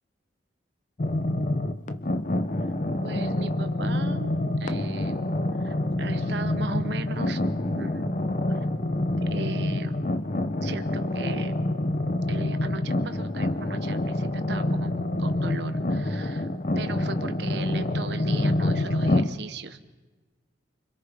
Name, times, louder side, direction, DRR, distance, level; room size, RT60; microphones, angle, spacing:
sound 1, 1.0-19.3, left 1 dB, 40° left, 0.6 m, -27 dB
voice 1, 3.0-4.3 4.6-5.3 5.6-7.4 7.7-8.7 9.3-10.0 10.6-11.5 12.3-16.5 16.7-19.8, right 3 dB, 65° right, 9 dB, 1.0 m, -38 dB
29.5 x 25.5 x 3.5 m, 1.3 s
head